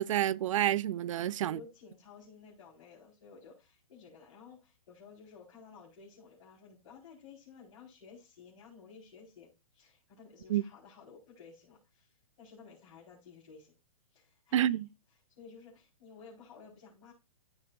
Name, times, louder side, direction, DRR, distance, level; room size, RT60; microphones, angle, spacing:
voice 1, 0.0-1.6 10.5-10.6 14.5-14.9, right 12 dB, 60° right, 0.5 m, -29 dB
voice 2, 1.2-13.8 14.1-14.7 15.3-17.1, left 5 dB, 55° left, 4.5 m, -54 dB
14.5 x 5.6 x 2.5 m
hypercardioid pair, 140°, 19 cm